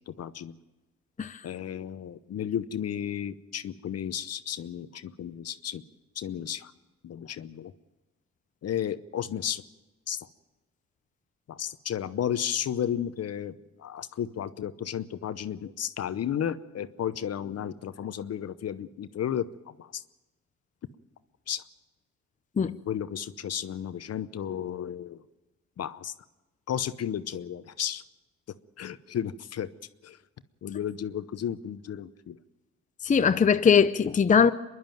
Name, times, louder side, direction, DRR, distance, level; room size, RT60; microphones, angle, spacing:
voice 1, 0.1-0.5 1.4-5.8 6.2-6.7 7.0-7.7 8.6-9.6 10.1-10.3 11.5-19.5 19.8-20.0 21.5-21.6 22.9-25.2 25.8-26.1 26.7-28.0 28.8-29.7 30.0-30.2 30.6-32.4, left 9 dB, 55° left, 0.9 m, -33 dB
voice 2, 33.0-34.5, left 6 dB, 25° left, 0.6 m, -20 dB
25.5 x 11.5 x 9.1 m
cardioid pair, 90°, 30 cm